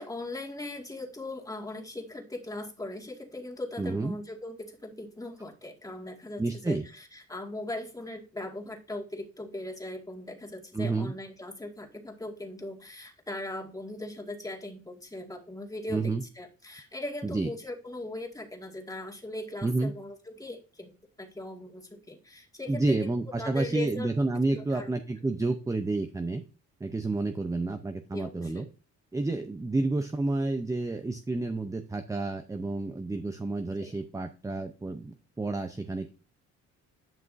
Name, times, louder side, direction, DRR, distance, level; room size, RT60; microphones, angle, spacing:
voice 1, 0.0-24.1 24.5-24.9 28.1-28.6 33.8-33.9, left 1 dB, 10° left, 1 dB, 2.0 m, -39 dB
voice 2, 3.8-4.2 6.4-6.9 10.7-11.1 15.9-16.2 17.2-17.5 19.6-19.9 22.7-26.4 26.8-28.7 29.1-36.1, right 2 dB, 10° right, 8 dB, 0.6 m, -30 dB
10.5 x 5.9 x 2.6 m, 0.34 s
cardioid pair, 90°, 30 cm